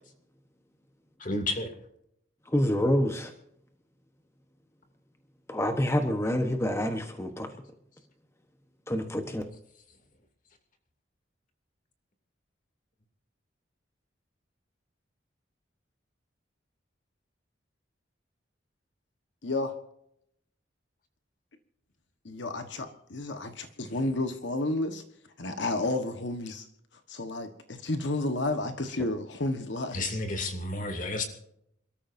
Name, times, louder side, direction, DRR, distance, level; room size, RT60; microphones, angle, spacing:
voice 1, 1.2-1.8 29.9-31.3, left 2 dB, 45° left, 5 dB, 2.6 m, -31 dB
voice 2, 2.5-3.3 5.5-7.5 8.9-9.4, equal, 15° left, 5 dB, 1.1 m, -27 dB
voice 3, 19.4-19.7 22.2-25.0 25.4-26.7 27.1-30.0, left 2 dB, 70° left, 7 dB, 1.3 m, -31 dB
28.0 x 13.5 x 2.7 m, 0.75 s
head